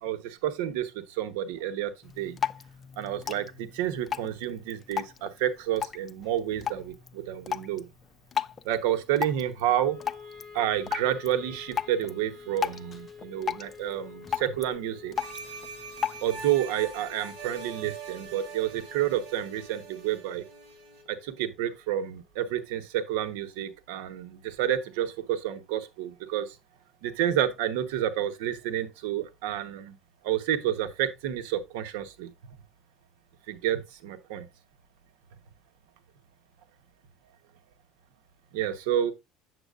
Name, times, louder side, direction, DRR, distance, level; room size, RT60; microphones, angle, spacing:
voice 1, 0.0-1.9 2.2-2.4 3.0-7.9 8.6-10.0 10.5-15.1 16.2-20.4 21.1-26.6 27.0-29.9 30.2-32.3 33.5-34.5 38.5-39.1, right 11 dB, 90° right, 1.0 m, -29 dB
Drip, 2.0-16.5, left 8 dB, 25° left, 0.4 m, -37 dB
Wind instrument woodwind instrument, 9.8-22.0, left 5 dB, 25° right, 4.5 m, -49 dB
sound 1, 15.2-21.0, right 6 dB, 65° right, 5.6 m, -43 dB
7.9 x 7.5 x 2.4 m
cardioid pair, 130°, 0 cm